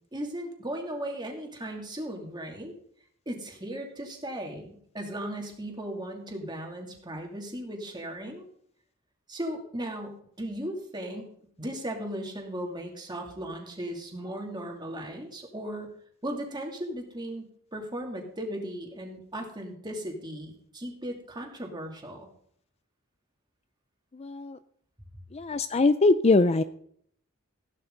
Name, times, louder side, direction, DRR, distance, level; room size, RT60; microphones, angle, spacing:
voice 1, 0.1-2.7 3.3-8.5 9.3-11.3 11.6-15.9 16.2-17.4 17.7-22.3, right 1 dB, 20° right, 1 dB, 2.7 m, -37 dB
voice 2, 24.1-24.6 25.3-26.6, left 3 dB, 30° left, 13 dB, 0.4 m, -22 dB
15.5 x 11.5 x 3.9 m, 0.64 s
head